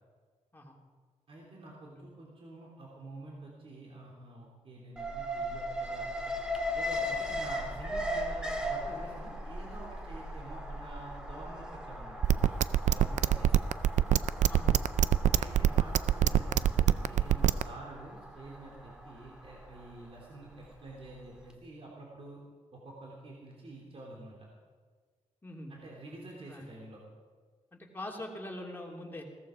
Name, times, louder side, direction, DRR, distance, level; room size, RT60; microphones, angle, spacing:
voice 1, 1.3-6.3 6.7-12.5 12.8-13.6 15.3-22.4 22.7-24.4 25.7-27.0, right 2 dB, 50° right, -2 dB, 3.1 m, -48 dB
Alarm, 5.0-21.1 21.4-21.5, equal, 5° right, 1.8 m, -38 dB
sound 1, 12.2-17.6, right 10 dB, 75° right, 0.5 m, -23 dB
voice 2, 14.5-14.8 15.6-15.8 25.4-25.7 26.5-26.7 27.7-29.2, left 1 dB, 15° left, -1 dB, 2.9 m, -43 dB
16.0 x 14.0 x 5.1 m, 1.6 s
cardioid pair, 85°, 12 cm